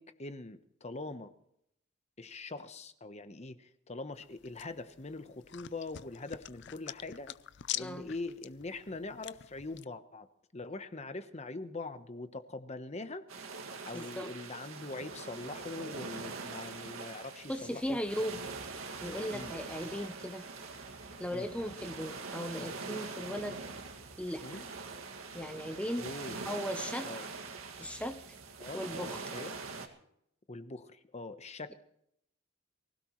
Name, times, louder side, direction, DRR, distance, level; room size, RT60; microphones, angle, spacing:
voice 1, 0.0-1.3 2.2-7.4 7.8-10.3 10.5-13.3 13.9-18.0 19.3-19.5 21.3-21.5 24.4-24.7 26.0-26.4 27.0-27.3 28.6-28.8 29.3-29.6 30.5-31.7, left 2 dB, 30° left, 10 dB, 1.0 m, -43 dB
sound 1, 4.1-9.9, left 13 dB, 55° left, 0.5 m, -45 dB
voice 2, 7.8-8.1 13.9-14.3 17.5-18.4 19.0-20.4 21.2-23.6 24.2-24.6 25.3-26.1 26.4-27.1 27.8-28.2 28.7-29.2, equal, 5° left, 7 dB, 0.8 m, -37 dB
sound 2, 13.3-29.9, right 4 dB, 80° right, 2.0 m, -43 dB
24.0 x 16.5 x 3.1 m, 0.75 s
head